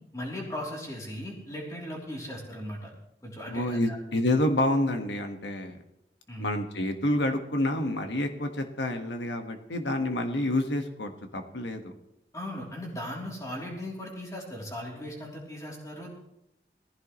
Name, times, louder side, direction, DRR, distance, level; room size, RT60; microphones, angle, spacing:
voice 1, 0.1-2.9 3.2-4.0 6.3-6.6 10.2-10.3 12.3-16.1, left 1 dB, 20° left, -2 dB, 3.3 m, -38 dB
voice 2, 3.5-5.8 6.4-11.9, left 1 dB, 90° left, 5 dB, 1.5 m, -28 dB
19.5 x 15.0 x 3.2 m, 0.83 s
head